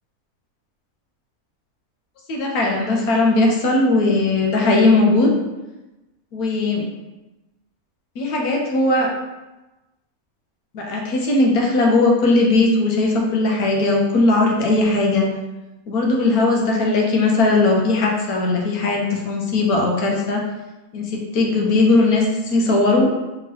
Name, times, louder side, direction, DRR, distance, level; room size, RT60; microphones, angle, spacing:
voice 1, 2.3-5.3 6.3-6.8 8.2-9.1 10.7-15.3 15.9-20.4 20.9-23.1, left 2 dB, 85° left, 0 dB, 1.2 m, -18 dB
3.5 x 3.0 x 3.2 m, 1.1 s
omnidirectional pair, 1.5 m